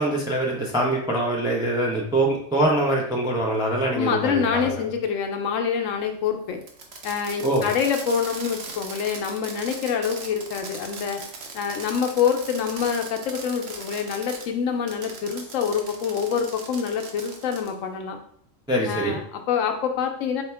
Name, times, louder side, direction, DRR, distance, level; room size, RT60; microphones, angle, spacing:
voice 1, 0.0-4.8 7.4-7.7 18.7-19.2, right 1 dB, 5° right, -1 dB, 0.3 m, -23 dB
voice 2, 3.9-6.6 7.0-11.2 11.5-18.2 18.9-20.4, left 7 dB, 80° left, 5 dB, 1.0 m, -26 dB
Fireworks, 6.6-14.5 14.9-17.7, right 4 dB, 60° right, 0.9 m, -39 dB
4.3 x 2.8 x 3.3 m, 0.63 s
omnidirectional pair, 1.3 m